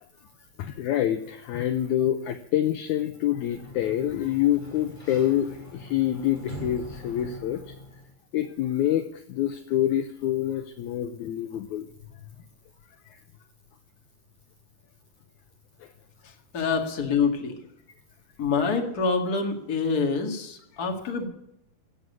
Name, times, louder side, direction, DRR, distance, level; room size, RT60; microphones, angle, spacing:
voice 1, 0.6-7.8 8.3-11.9 13.1-13.2 15.8-15.9, left 11 dB, 75° left, 9 dB, 1.8 m, -26 dB
Sliding door, 3.3-8.1, equal, 10° left, 3.7 m, -42 dB
voice 2, 16.5-17.6 18.4-21.3, left 5 dB, 30° left, 3 dB, 2.0 m, -26 dB
16.0 x 7.8 x 9.3 m, 0.78 s
omnidirectional pair, 4.2 m